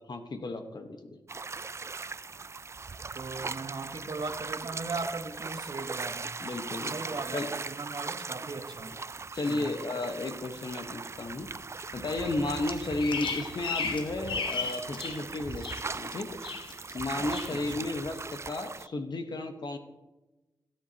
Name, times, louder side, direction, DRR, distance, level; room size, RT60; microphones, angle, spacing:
voice 1, 0.1-1.2 6.4-7.0 7.3-7.5 9.3-11.5 11.9-16.4 16.9-19.8, left 2 dB, 60° left, 7 dB, 1.2 m, -33 dB
sound 1, 1.3-18.9, right 4 dB, 35° right, 0.3 m, -39 dB
voice 2, 3.1-6.3 6.8-9.0 9.5-9.6 17.5-17.9, right 3 dB, 60° right, 6 dB, 1.2 m, -38 dB
Bird vocalization bird call bird song, 12.7-15.2 15.5-16.1 16.4-17.0 17.3-17.6, left 5 dB, 80° left, 1.0 m, -34 dB
17.0 x 7.9 x 2.9 m, 1.1 s
cardioid pair, 45°, 8 cm